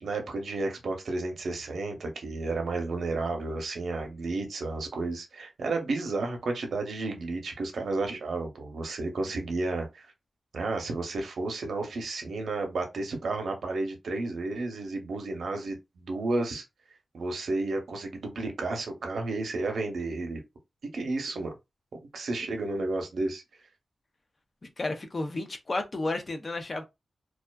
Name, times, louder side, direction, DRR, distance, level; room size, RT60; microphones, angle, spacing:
voice 1, 0.0-10.1 10.5-16.6 17.1-20.4 20.9-21.5 21.9-23.4, right 3 dB, 85° right, 0.6 m, -32 dB
voice 2, 24.6-26.8, left 2 dB, 35° left, 0.4 m, -32 dB
2.4 x 2.3 x 2.2 m
wide cardioid pair, 170°, 0 cm